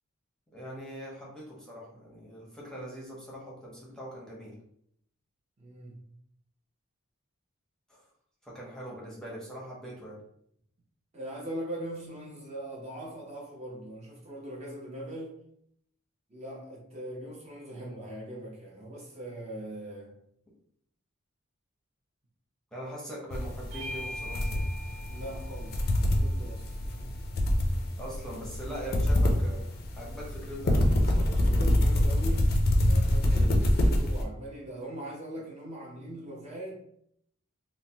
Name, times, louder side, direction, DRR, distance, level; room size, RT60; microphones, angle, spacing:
voice 1, 0.5-4.6 7.9-8.0 8.4-10.2 17.7-18.0 22.7-24.7 28.0-29.6 30.0-31.5 33.3-33.6, equal, 5° left, -5 dB, 0.7 m, -42 dB
voice 2, 5.6-6.2 11.1-15.4 16.3-20.1 25.1-27.2 31.3-36.7, right 1 dB, 30° right, -4 dB, 0.5 m, -41 dB
sound 1, 23.3-34.2, left 1 dB, 45° left, 0.4 m, -26 dB
Bell / Doorbell, 23.7-28.5, left 1 dB, 80° right, 1.3 m, -45 dB
3.0 x 2.0 x 2.7 m, 0.71 s
head